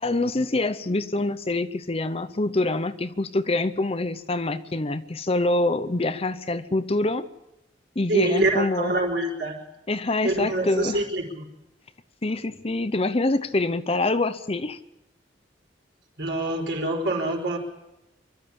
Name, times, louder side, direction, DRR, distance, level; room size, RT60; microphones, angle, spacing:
voice 1, 0.0-7.3 8.0-8.9 9.9-11.1 12.2-14.8, left 2 dB, 30° left, 12 dB, 0.8 m, -25 dB
voice 2, 8.1-9.6 10.2-11.4 16.2-17.6, right 1 dB, 65° right, 1 dB, 4.8 m, -25 dB
25.5 x 12.5 x 8.7 m, 0.94 s
head